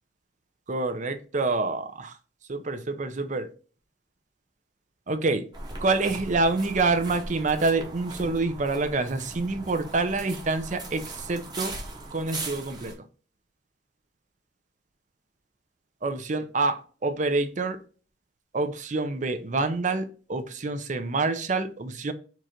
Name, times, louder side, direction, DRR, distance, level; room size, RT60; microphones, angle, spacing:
voice 1, 0.7-2.1 2.5-3.5 5.1-5.4 5.8-11.7 12.1-13.0 16.0-17.8 18.5-22.1, right 3 dB, 45° right, 0.6 m, -27 dB
sound 1, 5.5-12.9, right 2 dB, 25° right, 1.0 m, -39 dB
4.6 x 2.5 x 4.3 m
head